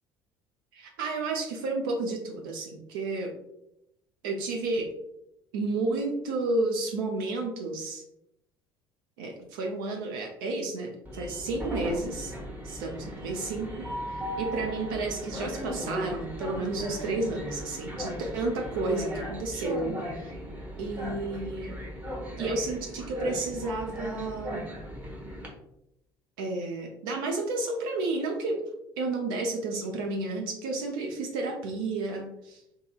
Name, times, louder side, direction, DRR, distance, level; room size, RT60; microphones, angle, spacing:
voice 1, 0.7-3.3 4.2-4.9 5.5-8.0 9.2-12.3 12.6-20.3 20.8-21.7 22.4-24.7 26.4-28.6 29.0-32.6, right 3 dB, 70° right, 2 dB, 0.4 m, -31 dB
Train, 11.0-25.5, equal, 15° right, 0.8 m, -37 dB
2.6 x 2.6 x 2.3 m, 0.81 s
figure-of-eight pair, 55°, 12 cm